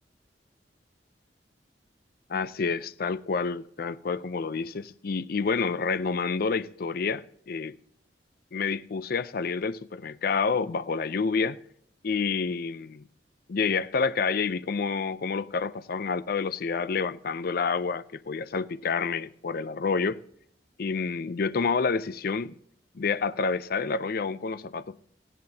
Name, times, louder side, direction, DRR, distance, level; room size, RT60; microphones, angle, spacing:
voice 1, 2.3-7.8 8.5-11.6 12.0-13.0 13.5-20.2 20.8-22.5 22.9-25.0, left 5 dB, 55° left, 0.5 m, -28 dB
18.5 x 15.5 x 2.8 m
head